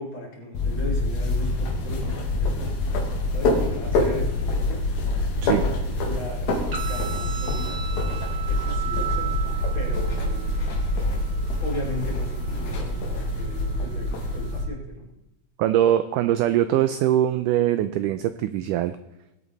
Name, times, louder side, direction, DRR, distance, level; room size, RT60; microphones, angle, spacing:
voice 1, 0.0-2.8 3.3-4.9 5.4-5.8 6.0-7.8 8.5-9.4 9.7-10.5 11.6-15.1, left 2 dB, 35° left, -3 dB, 4.1 m, -37 dB
sound 1, 0.5-14.6, left 1 dB, 80° left, 4.0 m, -26 dB
sound 2, 6.7-14.7, right 10 dB, 35° right, 1.3 m, -38 dB
voice 2, 15.6-19.0, right 12 dB, 85° right, 11 dB, 1.8 m, -22 dB
21.0 x 8.3 x 4.1 m, 0.92 s
omnidirectional pair, 4.2 m